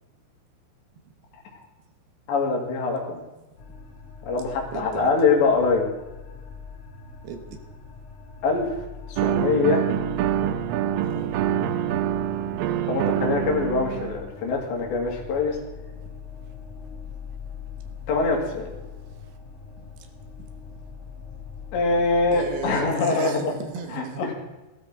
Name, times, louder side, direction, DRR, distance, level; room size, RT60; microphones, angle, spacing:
voice 1, 2.3-3.2 4.3-5.9 8.4-9.8 12.8-15.6 18.1-18.7 21.7-23.6 23.9-24.3, left 4 dB, 80° left, 1 dB, 4.7 m, -24 dB
sound 1, 3.6-23.0, left 5 dB, 55° left, 3.7 m, -42 dB
voice 2, 4.7-5.1 7.2-7.6 11.0-11.4 20.0-20.1 22.3-24.2, right 6 dB, 70° right, 6 dB, 3.1 m, -36 dB
sound 2, 9.2-14.2, right 10 dB, 85° right, 2.0 m, -25 dB
17.0 x 13.0 x 3.8 m, 1.1 s
omnidirectional pair, 5.0 m